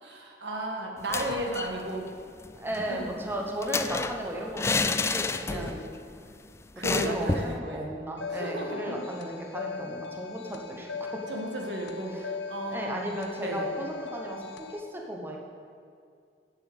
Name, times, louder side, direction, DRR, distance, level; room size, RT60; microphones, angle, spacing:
voice 1, 0.0-2.0 2.9-3.0 5.5-5.8 6.8-7.9 8.3-9.0 11.3-13.1 13.4-13.6, right 1 dB, 85° right, 0 dB, 1.7 m, -34 dB
sound 1, 1.0-1.8 2.1-2.2 2.4-5.9 6.2-6.3 6.8-7.6, left 3 dB, 15° left, 0.3 m, -30 dB
voice 2, 2.5-5.8 6.9-11.2 12.1-12.3 12.7-15.4, right 1 dB, 15° right, 0 dB, 1.0 m, -36 dB
sound 2, 8.2-14.8, left 5 dB, 85° left, 0.7 m, -39 dB
8.2 x 7.7 x 8.1 m, 2.3 s
head